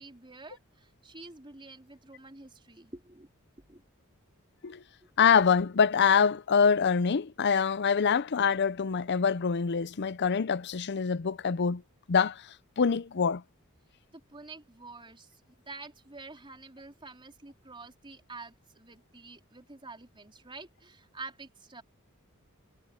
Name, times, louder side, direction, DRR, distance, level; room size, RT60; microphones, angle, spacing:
voice 1, 0.0-3.3 3.7-3.8 14.1-21.8, right 3 dB, 25° right, 3.7 m, -48 dB
voice 2, 5.2-11.8 12.1-12.4 12.8-13.4, left 6 dB, 50° left, 0.6 m, -25 dB
head